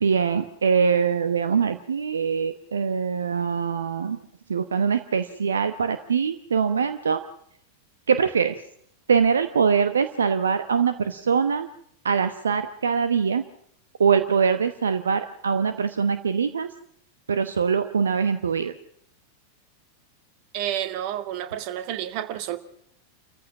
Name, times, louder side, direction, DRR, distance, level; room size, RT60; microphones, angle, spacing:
voice 1, 0.0-4.2 4.5-7.2 8.1-8.5 9.1-11.7 12.0-13.4 14.0-16.7 17.3-18.7, right 6 dB, 70° right, 10 dB, 1.0 m, -23 dB
voice 2, 20.5-22.6, right 11 dB, 45° right, 9 dB, 1.8 m, -30 dB
29.5 x 14.5 x 6.2 m, 0.69 s
figure-of-eight pair, 90°, 0 cm